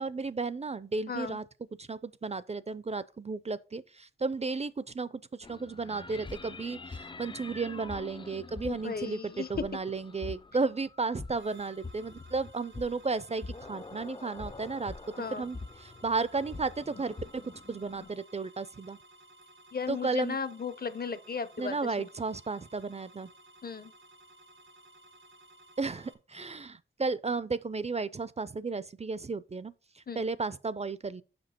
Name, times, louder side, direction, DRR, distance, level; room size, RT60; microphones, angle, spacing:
voice 1, 0.0-1.4 1.8-14.9 15.3-19.0 19.9-20.4 21.6-23.3 25.8-31.2, right 4 dB, 35° right, 0.5 m, -34 dB
voice 2, 1.1-1.4 8.6-9.5 15.2-15.5 19.7-22.1 23.6-23.9 30.1-30.3, left 5 dB, 50° left, 0.8 m, -36 dB
sound 1, 5.4-18.1, left 3 dB, 25° left, 0.5 m, -45 dB
sound 2, 11.3-26.1, right 1 dB, 75° right, 1.2 m, -57 dB
5.5 x 5.2 x 4.4 m
cardioid pair, 40°, 20 cm